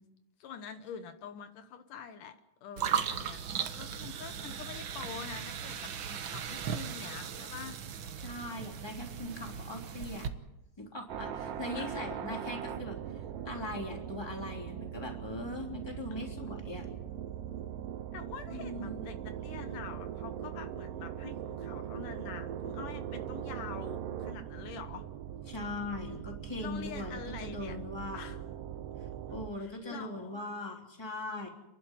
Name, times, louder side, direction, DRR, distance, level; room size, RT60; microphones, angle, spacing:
voice 1, 0.4-2.4 2.6-3.4 3.7-7.8 11.7-11.9 18.1-25.1 26.6-27.8 28.1-28.4 29.6-30.4, left 7 dB, 75° left, 8 dB, 2.7 m, -46 dB
sound 1, 2.8-10.3, right 8 dB, 70° right, 1.1 m, -37 dB
voice 2, 8.2-10.3 10.8-13.0 13.4-16.9 18.5-19.0 25.5-28.2 29.3-31.5, left 1 dB, 5° left, 1 dB, 3.2 m, -40 dB
sound 2, 11.1-29.5, right 9 dB, 90° right, 2.7 m, -40 dB
30.0 x 12.0 x 9.3 m, 0.94 s
omnidirectional pair, 3.8 m